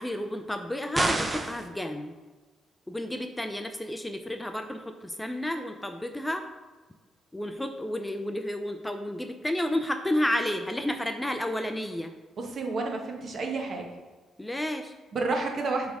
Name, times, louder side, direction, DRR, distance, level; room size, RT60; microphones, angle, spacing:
voice 1, 0.0-2.1 2.9-6.4 7.3-12.1 14.4-14.9, left 1 dB, 10° left, 6 dB, 0.5 m, -31 dB
sound 1, 0.9-1.7, right 2 dB, 25° right, 0.7 m, -28 dB
voice 2, 12.4-13.9 15.1-15.9, right 3 dB, 50° right, 2 dB, 1.3 m, -30 dB
6.2 x 3.5 x 4.8 m, 1.3 s
cardioid pair, 90°, 0 cm